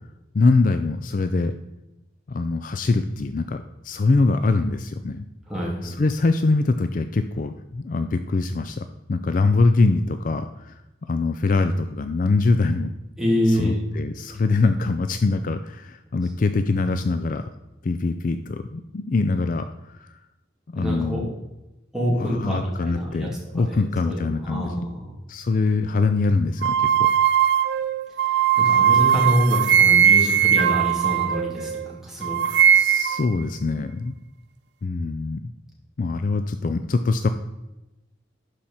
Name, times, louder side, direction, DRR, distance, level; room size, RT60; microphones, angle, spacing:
voice 1, 0.3-1.5 2.3-5.2 5.8-12.9 13.5-17.4 17.8-19.7 20.0-20.1 20.7-21.3 22.1-24.8 25.3-27.1 32.8-34.1 34.8-35.4 36.0-37.3, left 3 dB, 45° left, 8 dB, 0.4 m, -23 dB
voice 2, 5.5-6.0 13.2-13.8 20.8-21.3 21.9-23.3 23.6-25.2 28.2-32.6, equal, 5° right, -5 dB, 2.5 m, -26 dB
sound 1, 26.6-31.9 32.2-33.3, right 9 dB, 60° right, 0.3 m, -19 dB
11.5 x 5.0 x 4.2 m, 0.96 s
head